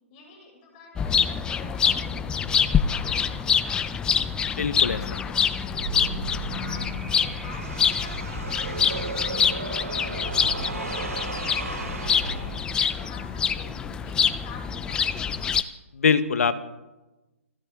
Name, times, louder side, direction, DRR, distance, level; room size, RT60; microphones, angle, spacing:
voice 1, 0.1-8.9 9.3-15.4, left 3 dB, 35° left, -2 dB, 6.3 m, -47 dB
sound 1, 1.0-15.6, left 7 dB, 10° left, 0.5 m, -26 dB
voice 2, 4.6-5.0 15.9-16.6, left 6 dB, 70° left, 12 dB, 1.2 m, -22 dB
sound 2, 5.7-12.9, right 4 dB, 80° right, 3.4 m, -34 dB
29.0 x 11.0 x 3.6 m, 1.1 s
hypercardioid pair, 140°, 8 cm